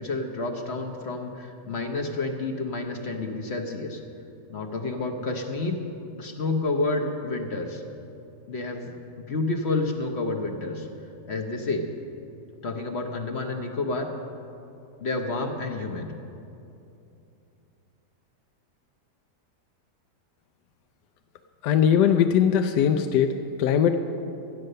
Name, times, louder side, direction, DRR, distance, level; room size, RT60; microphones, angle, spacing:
voice 1, 0.0-4.0 4.5-5.8 6.2-7.8 8.5-10.9 11.3-11.9 12.6-14.1 15.0-16.1, left 3 dB, 45° left, 3 dB, 1.0 m, -29 dB
voice 2, 21.6-23.3 23.6-24.0, left 8 dB, 80° left, 6 dB, 1.2 m, -20 dB
13.5 x 9.6 x 6.6 m, 2.7 s
omnidirectional pair, 1.8 m